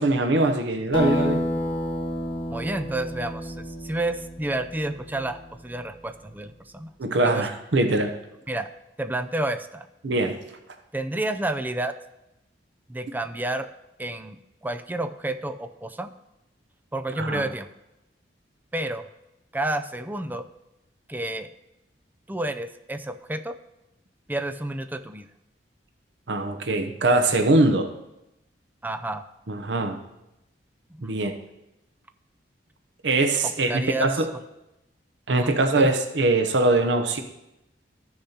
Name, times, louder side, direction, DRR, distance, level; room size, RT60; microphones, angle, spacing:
voice 1, 0.0-1.5 7.0-8.1 10.0-10.4 17.2-17.4 26.3-27.9 29.5-30.0 31.0-31.4 33.0-34.3 35.3-37.2, right 2 dB, 75° right, 6 dB, 0.7 m, -22 dB
Acoustic guitar, 0.9-5.8, left 1 dB, 30° left, 0.9 m, -30 dB
voice 2, 2.5-6.9 7.2-7.5 8.5-8.7 9.0-9.9 10.9-11.9 12.9-13.7 14.0-16.1 16.9-17.7 18.7-19.0 19.5-20.5 21.1-21.5 22.3-23.6 24.3-25.3 28.8-29.2 31.0-31.1 33.4-34.1 35.3-35.9, right 1 dB, 10° right, 9 dB, 0.4 m, -30 dB
14.0 x 6.7 x 2.9 m, 0.90 s
head